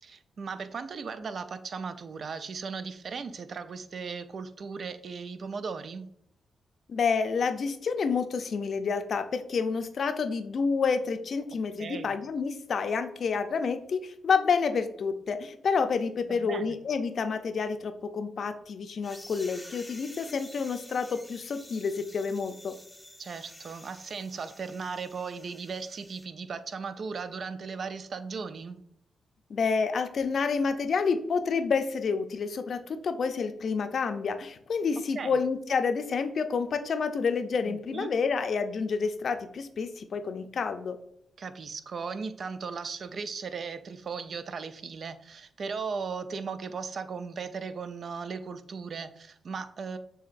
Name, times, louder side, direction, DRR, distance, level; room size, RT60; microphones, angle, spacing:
voice 1, 0.0-6.1 11.8-12.1 16.3-16.8 23.2-28.8 35.1-35.4 37.6-38.1 41.4-50.0, right 5 dB, 60° right, 11 dB, 0.4 m, -37 dB
voice 2, 6.9-22.8 29.5-41.0, left 5 dB, 60° left, 8 dB, 0.5 m, -29 dB
sound 1, 19.0-26.2, left 1 dB, 10° left, 0.7 m, -49 dB
6.9 x 2.8 x 2.5 m, 0.71 s
supercardioid pair, 45°, 0 cm